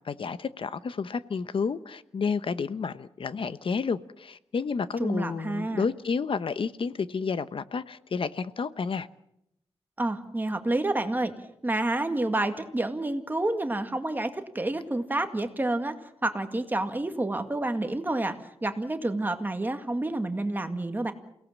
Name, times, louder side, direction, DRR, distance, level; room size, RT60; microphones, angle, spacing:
voice 1, 0.0-9.1, left 5 dB, 60° left, 1.0 m, -30 dB
voice 2, 5.0-5.8 10.0-11.3 11.6-16.0 16.2-18.3 18.6-21.1, right 2 dB, 20° right, 2.2 m, -29 dB
28.5 x 18.0 x 7.4 m
wide cardioid pair, 120°, 10 cm